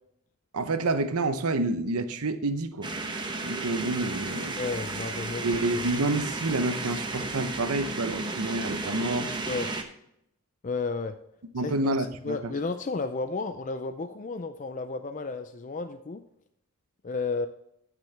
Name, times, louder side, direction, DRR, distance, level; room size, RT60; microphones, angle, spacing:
voice 1, 0.5-2.9 3.4-4.6 5.4-9.3 11.5-12.5, right 2 dB, 85° right, 10 dB, 0.8 m, -28 dB
sound 1, 2.8-9.8, right 3 dB, 20° right, 0.9 m, -33 dB
voice 2, 4.6-5.8 9.5-9.7 10.6-11.2 11.6-16.2 17.0-17.5, left 4 dB, 35° left, 8 dB, 0.4 m, -33 dB
14.5 x 6.1 x 3.3 m, 0.76 s
head